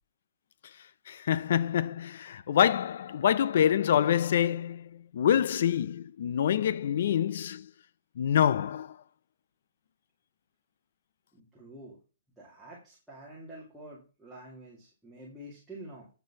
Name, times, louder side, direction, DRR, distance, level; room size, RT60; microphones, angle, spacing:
voice 1, 1.1-7.7 8.2-9.0, left 9 dB, 45° left, 0.5 m, -26 dB
voice 2, 11.3-12.0 12.4-16.1, right 1 dB, ahead, 2.1 m, -48 dB
9.2 x 6.6 x 5.8 m
hypercardioid pair, 180°, 0 cm